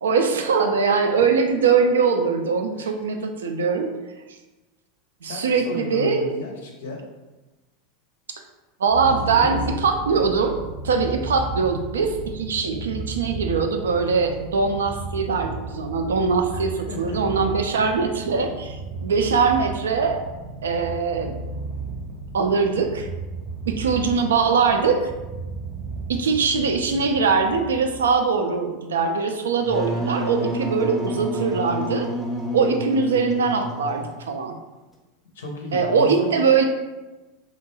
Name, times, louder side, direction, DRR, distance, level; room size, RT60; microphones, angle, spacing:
voice 1, 0.0-3.9 5.2-6.3 8.8-10.6 10.8-20.2 20.6-21.3 22.3-23.1 23.7-25.1 26.1-32.1 32.5-34.5 35.7-36.6, right 5 dB, 75° right, 5 dB, 0.3 m, -22 dB
voice 2, 5.2-7.0 9.0-9.8 16.5-17.2 35.3-36.5, left 2 dB, 70° left, 0 dB, 0.5 m, -34 dB
Purr, 8.9-28.2, right 3 dB, 55° right, 0.7 m, -34 dB
Wind instrument woodwind instrument, 29.6-34.2, right 1 dB, 5° left, 0.5 m, -29 dB
2.4 x 2.1 x 3.0 m, 1.1 s
figure-of-eight pair, 85°, 0 cm